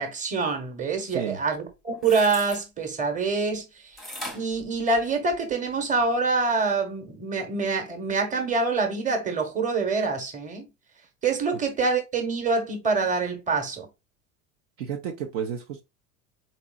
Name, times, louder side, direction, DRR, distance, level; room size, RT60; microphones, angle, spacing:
voice 1, 0.0-3.7 4.3-10.7 11.2-13.9, right 4 dB, 15° right, 1.2 m, -25 dB
voice 2, 1.0-1.4 14.8-15.8, right 8 dB, 55° right, 0.8 m, -32 dB
sound 1, 1.7-2.6 4.0-5.5 6.0-6.1, equal, ahead, 0.9 m, -39 dB
4.2 x 3.5 x 2.3 m
figure-of-eight pair, 80°, 44 cm